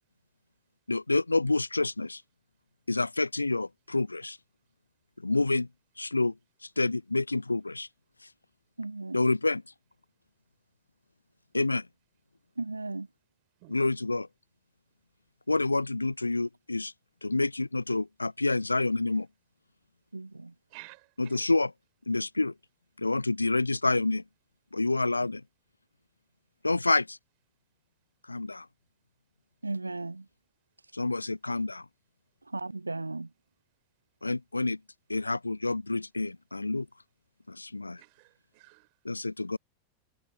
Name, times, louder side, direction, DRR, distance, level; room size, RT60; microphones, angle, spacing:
voice 1, 0.9-2.2 2.9-4.4 5.2-5.7 6.0-6.3 6.8-7.9 9.1-9.6 11.5-11.9 13.7-14.3 15.5-16.9 17.2-19.3 21.2-21.7 22.1-22.5 23.0-24.2 24.7-25.4 26.6-27.2 28.3-28.7 30.9-31.9 34.2-34.8 35.1-36.9 37.5-38.0 39.0-39.6, left 2 dB, 80° left, 0.3 m, -28 dB
voice 2, 8.8-9.2 12.6-13.1 20.1-20.5 29.6-30.3 30.8-30.9 32.4-33.3, right 3 dB, 80° right, 0.3 m, -36 dB
voice 3, 20.7-21.5 38.0-38.9, right 36 dB, 45° right, 5.3 m, -52 dB
figure-of-eight pair, 90°, 0 cm